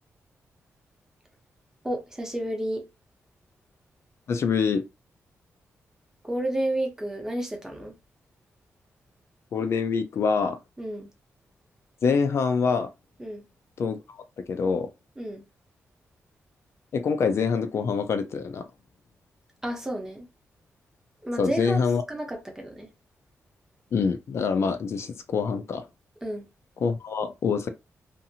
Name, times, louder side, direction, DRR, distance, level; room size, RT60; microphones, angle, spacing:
voice 1, 1.8-2.9 6.2-7.9 10.8-11.1 13.2-13.5 15.2-15.4 19.6-20.3 21.2-21.8 22.1-22.9 26.2-26.5, right 1 dB, 10° right, 0.8 m, -31 dB
voice 2, 4.3-4.8 9.5-10.6 12.0-12.9 13.8-14.2 14.5-14.9 16.9-18.7 21.4-22.0 23.9-25.9 26.8-27.7, left 5 dB, 55° left, 0.4 m, -25 dB
2.7 x 2.5 x 2.7 m
wide cardioid pair, 135°, 5 cm